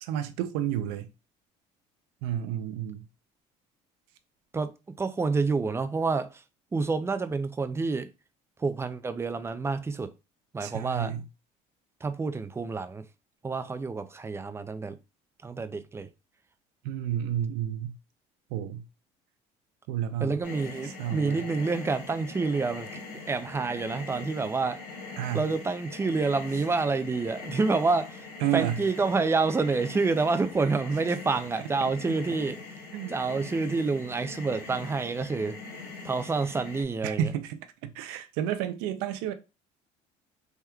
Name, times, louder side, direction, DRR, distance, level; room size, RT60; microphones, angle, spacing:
voice 1, 0.0-1.1 2.2-3.0 10.6-11.2 16.8-18.0 18.5-18.8 19.9-20.4 21.0-21.4 25.2-25.4 28.4-28.8 32.9-33.1 37.0-39.3, right 10 dB, 80° right, 0.5 m, -31 dB
voice 2, 5.0-6.4 6.7-8.1 8.6-10.1 10.5-11.1 12.0-13.0 13.4-15.0 15.4-16.1 20.2-22.9 23.3-24.8 25.3-28.3 28.5-32.6 33.1-35.6 36.0-37.3, right 4 dB, 15° right, 0.4 m, -28 dB
sound 1, 20.4-36.8, left 3 dB, 85° left, 1.5 m, -42 dB
3.5 x 3.0 x 2.3 m
supercardioid pair, 90°, 17 cm